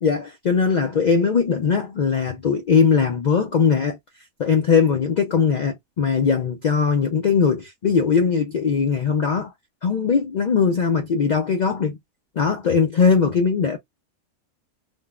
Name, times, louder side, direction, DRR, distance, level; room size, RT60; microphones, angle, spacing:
voice 1, 0.0-4.0 4.4-9.5 9.8-12.0 12.4-13.8, left 6 dB, 70° left, 0.4 m, -20 dB
3.5 x 2.0 x 2.3 m
omnidirectional pair, 1.4 m